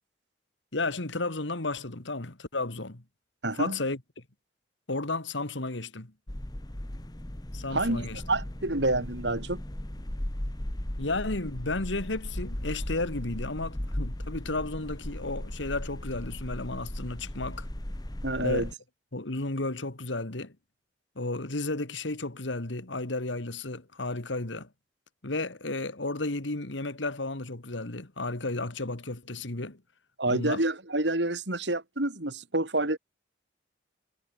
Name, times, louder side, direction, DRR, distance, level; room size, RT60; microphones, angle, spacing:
voice 1, 0.7-3.0 3.5-4.0 4.9-6.1 7.5-8.2 11.0-17.7 18.4-18.7 19.1-20.5 21.2-24.7 25.2-29.8 30.3-30.6, left 2 dB, 80° left, 2.2 m, -33 dB
voice 2, 3.4-3.8 7.7-9.6 18.2-18.7 30.2-33.0, right 2 dB, 70° right, 3.7 m, -28 dB
sound 1, 6.3-18.7, left 1 dB, 20° left, 1.1 m, -37 dB
head